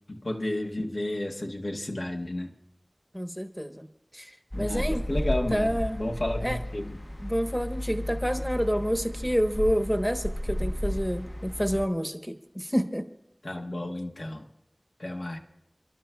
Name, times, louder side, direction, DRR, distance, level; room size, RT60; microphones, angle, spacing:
voice 1, 0.1-2.5 4.5-7.0 13.4-14.5 15.0-15.4, left 1 dB, 80° left, 1 dB, 1.2 m, -32 dB
voice 2, 3.1-3.9 4.1-5.1 5.5-6.0 6.4-6.6 7.2-13.1, equal, 5° left, 6 dB, 0.9 m, -28 dB
sound 1, 4.5-11.9, equal, 20° left, 0.6 m, -33 dB
29.0 x 12.0 x 2.3 m, 0.83 s
wide cardioid pair, 40°, 0 cm